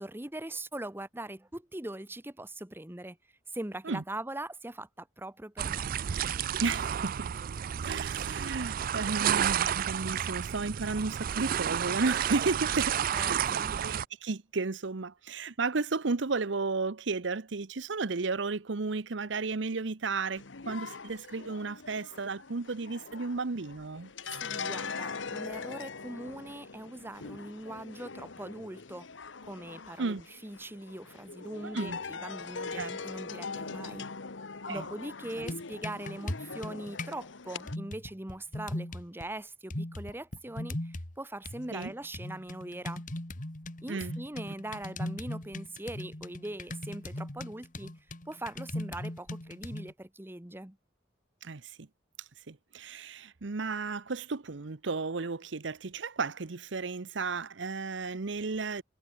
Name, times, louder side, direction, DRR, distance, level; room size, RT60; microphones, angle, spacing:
voice 1, 0.0-3.2 3.5-5.9 13.1-13.8 24.3-29.1 29.4-34.1 34.7-43.0 43.8-48.0 48.3-50.8, right 1 dB, 10° right, 1.2 m, -41 dB
sound 1, 5.6-14.0, right 9 dB, 50° right, 0.4 m, -31 dB
voice 2, 6.6-7.3 7.8-13.4 13.8-24.1 30.0-30.2 31.6-32.0 32.8-32.9 34.7-34.8 35.4-35.5 41.7-41.9 43.9-44.2 51.4-51.7 52.5-58.8, right 4 dB, 70° right, 0.9 m, -33 dB
sound 2, 20.4-37.8, left 4 dB, 80° left, 1.2 m, -42 dB
sound 3, 35.3-37.2 37.7-39.3 39.7-41.2 41.5-49.9, left 1 dB, 45° left, 2.2 m, -39 dB
head